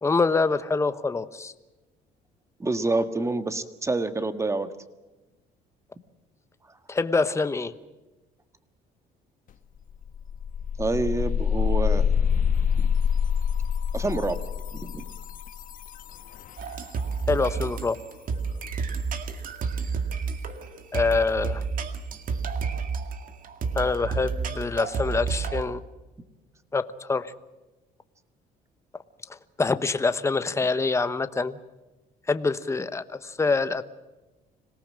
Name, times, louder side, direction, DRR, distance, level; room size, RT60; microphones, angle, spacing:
voice 1, 0.0-1.5 6.9-7.7 17.3-18.0 20.9-21.6 23.7-25.8 26.7-27.3 29.3-31.6 32.3-33.8, left 4 dB, 15° left, 12 dB, 1.0 m, -25 dB
voice 2, 2.6-4.7 10.8-12.1 12.8-12.9 13.9-14.4 14.7-15.0, right 2 dB, 15° right, 10 dB, 1.7 m, -27 dB
sound 1, 9.5-9.6 9.9-16.7, left 7 dB, 55° left, 1.2 m, -26 dB
sound 2, 16.6-25.6, right 5 dB, 55° right, 2.1 m, -30 dB
26.0 x 18.5 x 7.5 m, 1.1 s
cardioid pair, 110°, 17 cm